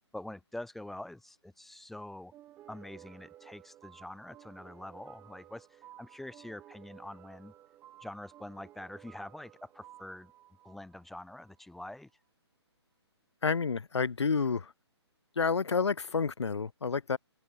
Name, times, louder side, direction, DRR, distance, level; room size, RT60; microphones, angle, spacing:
voice 1, 0.1-2.3 2.7-7.5 8.0-10.3 10.6-12.1, left 1 dB, ahead, 0.4 m, -45 dB
sound 1, 2.3-11.6, right 13 dB, 15° right, 3.1 m, -56 dB
voice 2, 13.4-14.7 15.4-17.2, left 5 dB, 75° left, 0.5 m, -29 dB
figure-of-eight pair, 135°, 15 cm